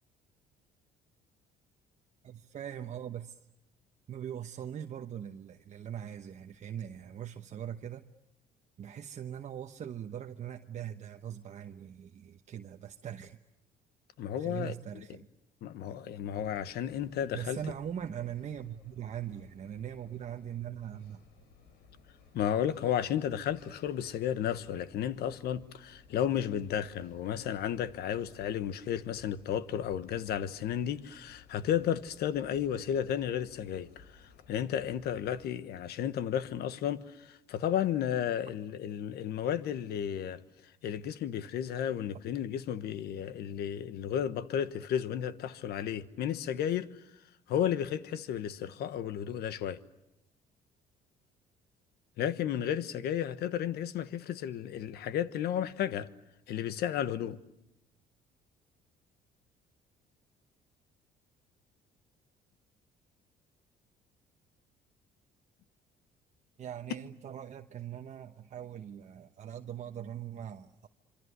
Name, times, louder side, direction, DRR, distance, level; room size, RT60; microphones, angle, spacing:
voice 1, 2.2-3.4 4.1-8.0 8.8-13.4 14.4-15.3 17.3-21.2 66.6-70.9, right 9 dB, 45° right, 1.0 m, -41 dB
voice 2, 14.2-14.7 15.6-17.6 22.3-34.0 34.5-40.4 40.8-46.9 47.5-49.8 52.2-56.1 56.5-57.4, left 9 dB, 70° left, 1.3 m, -33 dB
sound 1, 16.4-35.5, left 5 dB, 85° left, 4.1 m, -60 dB
26.5 x 25.5 x 8.1 m
cardioid pair, 110°, 17 cm